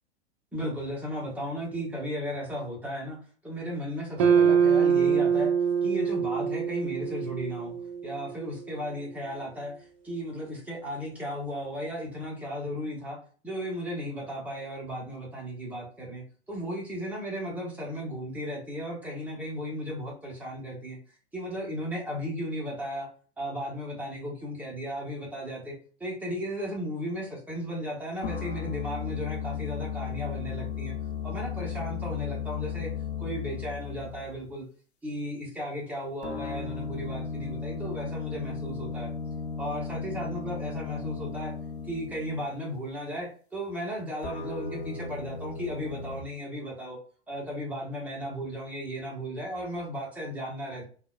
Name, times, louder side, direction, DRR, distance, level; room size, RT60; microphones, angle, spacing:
voice 1, 0.5-3.2 3.4-5.5 5.8-7.7 8.0-13.2 13.4-21.0 21.3-23.1 23.4-30.9 31.2-32.9 33.2-34.7 35.0-39.1 39.6-41.5 41.9-47.0 47.3-50.9, equal, 5° right, -3 dB, 0.8 m, -35 dB
sound 1, 4.2-8.5, right 7 dB, 25° right, 0.4 m, -24 dB
sound 2, 28.2-34.5 36.2-42.5 44.2-46.2, left 6 dB, 70° left, 0.7 m, -35 dB
3.7 x 2.2 x 2.4 m, 0.41 s
figure-of-eight pair, 105°, 34 cm